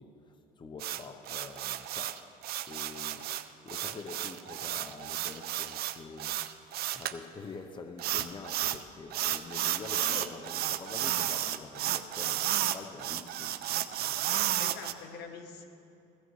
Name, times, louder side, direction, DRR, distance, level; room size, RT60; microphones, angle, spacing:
voice 1, 0.0-2.4 2.7-3.2 3.6-13.6, left 4 dB, 25° left, 0.7 m, -46 dB
sound 1, 0.8-7.1 8.0-8.8 9.1-14.9, right 13 dB, 65° right, 0.6 m, -32 dB
voice 2, 9.9-10.3 14.6-15.6, left 6 dB, 75° left, 1.5 m, -45 dB
16.0 x 16.0 x 3.2 m
cardioid pair, 110°, 17 cm